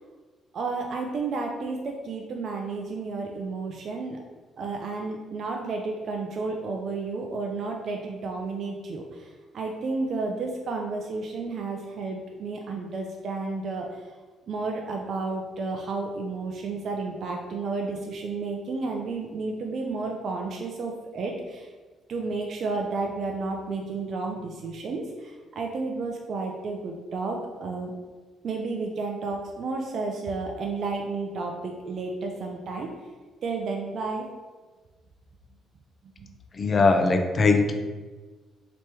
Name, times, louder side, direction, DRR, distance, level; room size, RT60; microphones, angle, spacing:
voice 1, 0.5-4.2 4.6-14.0 14.5-21.7 22.1-27.9 28.4-32.9 33.4-34.3 36.2-36.3, right 3 dB, 60° right, 1 dB, 0.4 m, -32 dB
voice 2, 36.5-37.7, left 3 dB, 40° left, 5 dB, 0.4 m, -20 dB
3.3 x 2.9 x 2.9 m, 1.3 s
cardioid pair, 90°, 0 cm